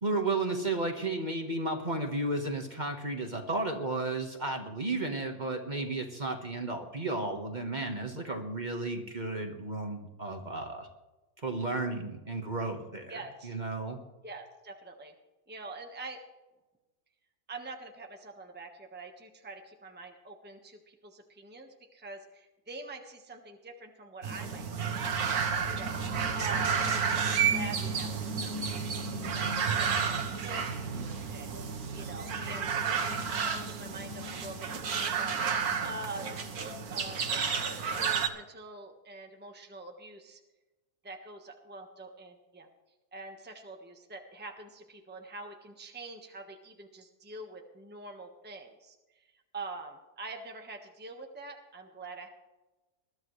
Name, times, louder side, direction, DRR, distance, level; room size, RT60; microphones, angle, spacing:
voice 1, 0.0-10.9 11.4-14.0, right 2 dB, 30° right, 3 dB, 1.5 m, -33 dB
voice 2, 13.1-13.6 14.2-15.1 15.5-16.2 17.5-25.2 25.6-26.0 26.3-37.4 37.7-40.4 41.0-42.7 43.1-48.9 49.5-52.3, right 3 dB, 5° right, 3 dB, 1.3 m, -45 dB
sound 1, 24.2-38.3, right 6 dB, 75° right, 1.7 m, -31 dB
21.0 x 13.0 x 3.3 m, 1.1 s
omnidirectional pair, 1.6 m